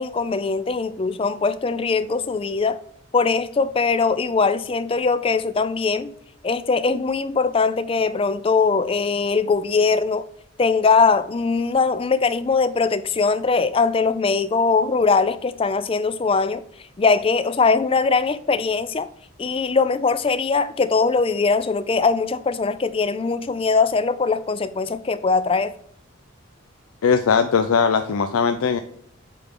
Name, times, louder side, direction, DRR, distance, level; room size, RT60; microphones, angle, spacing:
voice 1, 0.0-2.8 3.1-6.1 6.4-10.3 10.6-16.6 17.0-19.1 19.4-25.7, left 4 dB, 25° left, 0.3 m, -21 dB
voice 2, 27.0-28.8, left 6 dB, 90° left, 0.5 m, -19 dB
8.3 x 3.5 x 3.7 m
head